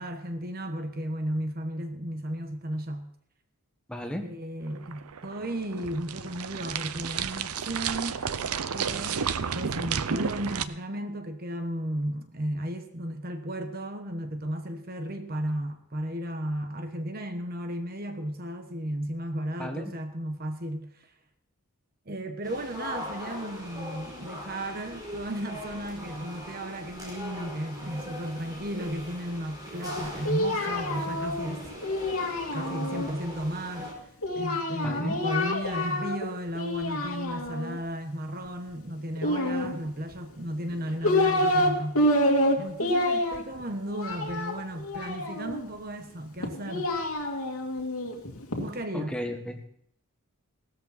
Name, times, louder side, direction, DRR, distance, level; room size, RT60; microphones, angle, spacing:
voice 1, 0.0-3.1 4.1-8.3 8.7-9.2 9.5-21.1 22.1-31.7 32.5-33.9 34.3-42.0 42.6-46.9 48.6-49.1, right 1 dB, 45° right, 1.2 m, -34 dB
voice 2, 3.9-4.2 19.6-19.9 34.8-35.2 48.9-49.6, equal, 5° left, 1.4 m, -34 dB
sound 1, 4.7-10.6, right 7 dB, 90° right, 0.7 m, -32 dB
sound 2, 22.4-33.9, equal, 20° right, 4.5 m, -41 dB
Singing, 29.8-33.1 34.2-36.2 36.5-37.8 39.2-40.1 40.7-41.7 41.9-45.6 46.4-48.6, left 1 dB, 85° left, 2.4 m, -28 dB
16.5 x 13.5 x 4.2 m
head